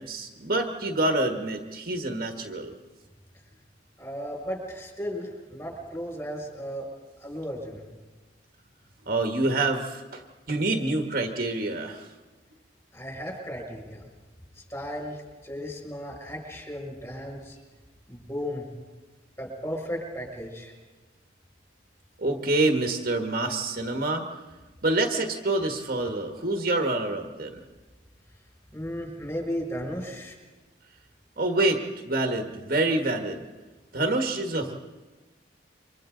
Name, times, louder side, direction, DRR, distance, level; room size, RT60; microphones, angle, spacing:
voice 1, 0.0-2.7 9.0-12.1 22.2-24.3 24.8-27.6 31.4-33.4 33.9-34.7, right 2 dB, 50° right, 3 dB, 1.6 m, -27 dB
voice 2, 4.0-6.9 7.2-7.8 12.9-14.1 14.5-17.6 18.1-18.7 19.4-20.7 28.7-30.3, equal, 15° left, 0 dB, 6.2 m, -35 dB
28.5 x 25.0 x 3.9 m, 1.2 s
head